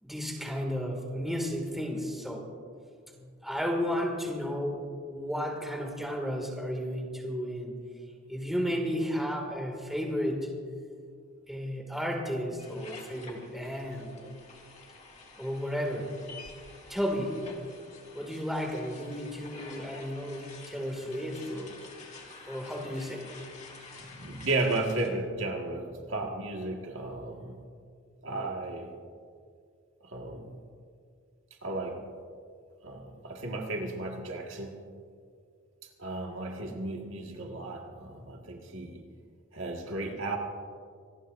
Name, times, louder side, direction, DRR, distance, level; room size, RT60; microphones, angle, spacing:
voice 1, 0.0-2.5 3.4-7.7 8.3-10.5 11.5-14.4 15.4-16.1 16.9-17.4 18.1-21.9 22.5-23.3, equal, ahead, 1 dB, 2.2 m, -33 dB
sound 1, 12.6-25.1, left 3 dB, 35° left, 2.1 m, -49 dB
voice 2, 24.0-27.6 28.2-28.9 30.0-30.6 31.6-32.0 32.8-34.8 36.0-39.0 39.5-40.4, right 2 dB, 65° right, 1 dB, 1.8 m, -34 dB
25.5 x 19.0 x 2.6 m, 2.1 s
head